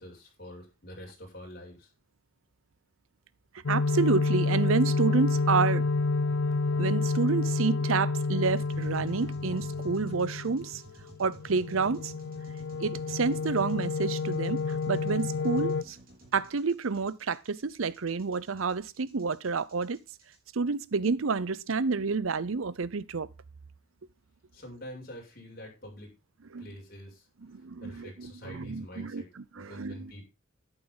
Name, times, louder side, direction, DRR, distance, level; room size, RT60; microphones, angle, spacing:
voice 1, 0.0-1.9 24.5-26.1 26.6-27.3 27.8-29.3 29.6-30.2, equal, 50° left, 6.9 m, -46 dB
sound 1, 3.7-10.8 11.1-15.8, left 3 dB, 85° left, 0.6 m, -29 dB
voice 2, 3.7-5.9 6.8-10.8 11.2-12.1 12.8-16.0 16.3-20.0 20.5-23.3 26.5-26.7 27.5-30.1, right 4 dB, 85° right, 0.7 m, -29 dB
sound 2, 8.4-20.4, right 1 dB, 45° right, 4.8 m, -52 dB
12.0 x 11.0 x 4.0 m
head